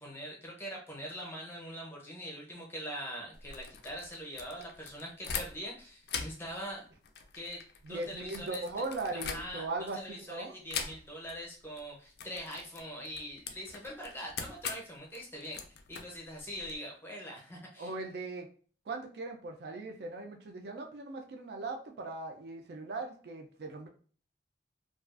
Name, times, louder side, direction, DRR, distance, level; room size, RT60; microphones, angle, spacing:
voice 1, 0.0-6.9 7.3-8.6 9.1-17.9, equal, 10° left, -2 dB, 0.6 m, -43 dB
sound 1, 3.3-5.8 6.0-9.9 10.7-11.4 11.6-11.8 12.2-16.8, left 6 dB, 60° left, 0.3 m, -42 dB
voice 2, 7.8-10.5 17.8-18.5 18.9-23.9, right 3 dB, 60° right, 3 dB, 0.3 m, -39 dB
2.4 x 2.3 x 2.3 m, 0.42 s
head